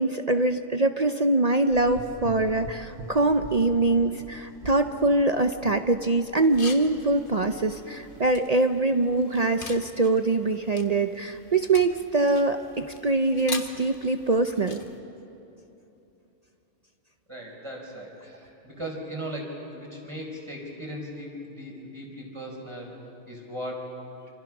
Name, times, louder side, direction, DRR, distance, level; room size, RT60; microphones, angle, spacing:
voice 1, 0.0-14.8, right 2 dB, 40° right, 7 dB, 0.6 m, -23 dB
Gurgling / Engine, 1.7-8.4, right 1 dB, 85° right, 1.9 m, -45 dB
sound 1, 6.4-15.0, left 3 dB, 40° left, 1.5 m, -43 dB
voice 2, 17.3-22.9 23.3-23.9, equal, 20° right, 0 dB, 4.6 m, -38 dB
26.5 x 26.5 x 6.0 m, 3.0 s
omnidirectional pair, 1.4 m